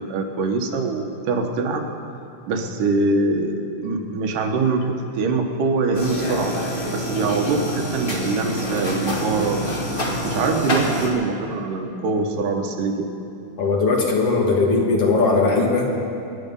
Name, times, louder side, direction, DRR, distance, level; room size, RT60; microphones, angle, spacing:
voice 1, 0.0-1.9 2.5-6.6 6.9-9.7 10.2-13.1, right 3 dB, 80° right, 3 dB, 2.8 m, -23 dB
sound 1, 5.9-11.1, equal, 25° left, 1.3 m, -26 dB
voice 2, 13.6-15.9, left 3 dB, 55° left, -1 dB, 2.3 m, -19 dB
24.5 x 10.5 x 5.5 m, 2.6 s
omnidirectional pair, 3.7 m